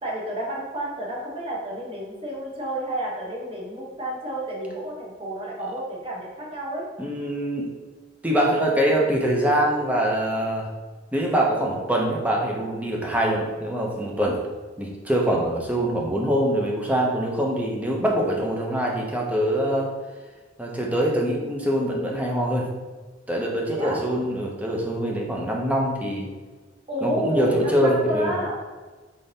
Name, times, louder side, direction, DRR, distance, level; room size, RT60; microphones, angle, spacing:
voice 1, 0.0-6.8 23.7-24.0 26.9-28.6, equal, 30° right, -3 dB, 0.9 m, -30 dB
voice 2, 7.0-7.7 8.2-10.7 11.1-14.4 14.8-19.9 20.6-22.7 23.3-26.3 27.0-28.4, right 1 dB, 10° right, -1 dB, 0.5 m, -24 dB
3.7 x 3.7 x 2.7 m, 1.3 s
head